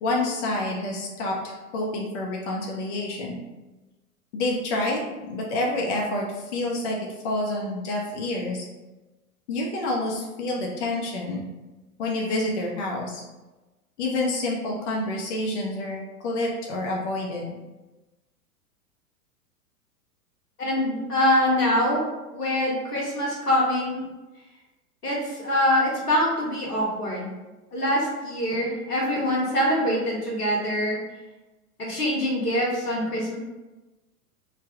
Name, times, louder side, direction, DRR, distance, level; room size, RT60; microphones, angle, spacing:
voice 1, 0.0-3.4 4.3-5.0 5.3-7.0 7.2-8.6 9.5-11.5 12.0-13.2 14.0-17.5, left 2 dB, 50° left, -2 dB, 0.7 m, -28 dB
voice 2, 20.6-22.0 22.3-24.0 25.0-27.3 27.7-31.0 31.8-33.4, equal, 90° left, -4 dB, 1.3 m, -24 dB
3.3 x 2.2 x 3.6 m, 1.1 s
figure-of-eight pair, 100°, 45 cm